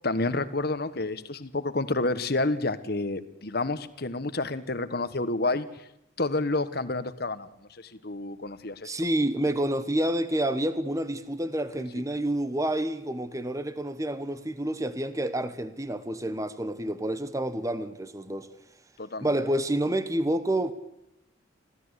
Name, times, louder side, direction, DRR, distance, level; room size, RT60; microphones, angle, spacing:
voice 1, 0.0-5.7 6.2-8.9 11.9-12.0 19.0-19.3, left 2 dB, 55° left, 1.4 m, -29 dB
voice 2, 8.8-18.5 19.2-20.7, right 1 dB, 15° right, 1.1 m, -28 dB
26.5 x 16.0 x 8.2 m
head